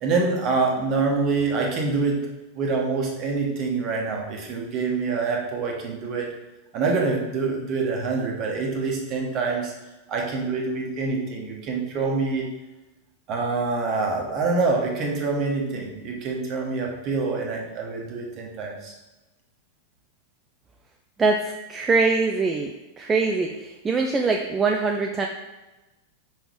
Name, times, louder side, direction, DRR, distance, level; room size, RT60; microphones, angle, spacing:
voice 1, 0.0-2.2 2.5-6.3 6.7-9.7 10.1-12.5 13.3-18.9, right 4 dB, 40° right, 0 dB, 1.3 m, -26 dB
voice 2, 21.2-22.7 23.0-25.3, right 4 dB, 20° right, 2 dB, 0.4 m, -23 dB
5.2 x 3.9 x 4.7 m, 1.1 s
figure-of-eight pair, 90°, 0 cm